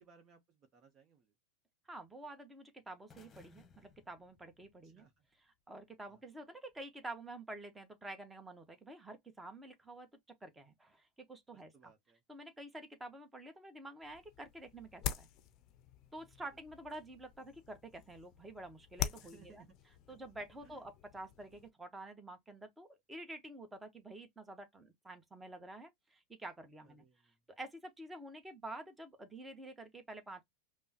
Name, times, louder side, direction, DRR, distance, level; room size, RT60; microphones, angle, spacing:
voice 1, 0.0-1.3 4.8-5.2 6.1-6.2 11.5-12.2 19.2-19.7 20.6-20.9 26.8-27.4, right 5 dB, 35° right, 0.9 m, -63 dB
voice 2, 1.9-5.1 5.3-10.1 10.4-11.9 12.3-15.3 16.1-19.6 20.1-27.0 27.6-30.4, right 2 dB, 10° right, 1.1 m, -49 dB
sound 1, 3.1-5.2, left 5 dB, 20° left, 1.2 m, -63 dB
sound 2, 14.0-21.7, left 11 dB, 45° left, 0.6 m, -45 dB
5.2 x 2.1 x 2.9 m
hypercardioid pair, 110°, 0 cm